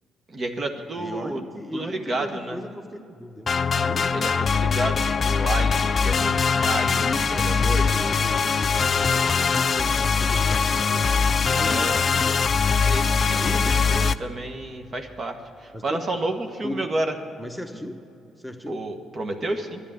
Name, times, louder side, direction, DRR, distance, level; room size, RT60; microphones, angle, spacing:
voice 1, 0.3-1.4 1.7-2.6 4.1-8.0 11.6-12.0 12.9-17.1 18.7-19.8, right 2 dB, 45° right, 5 dB, 1.4 m, -31 dB
voice 2, 1.0-4.1 6.9-12.4 13.3-13.8 15.7-16.0 16.6-16.9 17.4-18.0 18.4-18.8, equal, ahead, 6 dB, 1.2 m, -36 dB
sound 1, 3.5-14.1, left 5 dB, 45° left, 0.4 m, -22 dB
11.0 x 9.8 x 9.2 m, 2.6 s
hypercardioid pair, 50°, 0 cm